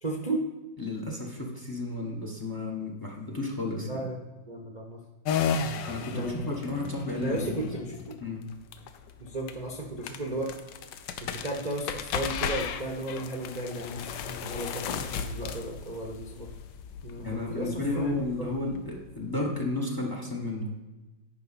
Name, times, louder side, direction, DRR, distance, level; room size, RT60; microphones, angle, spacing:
voice 1, 0.0-0.5 3.9-4.2 4.5-5.0 6.1-6.5 7.2-8.2 9.2-10.5 11.2-16.5 17.0-18.1, right 1 dB, 60° right, -1 dB, 0.4 m, -34 dB
voice 2, 0.8-4.0 5.9-7.7 8.2-8.4 17.2-20.7, left 2 dB, 20° left, 0 dB, 0.6 m, -32 dB
sound 1, 5.2-19.5, left 7 dB, 75° left, 1.2 m, -35 dB
10.5 x 4.9 x 4.1 m, 1.2 s
omnidirectional pair, 2.3 m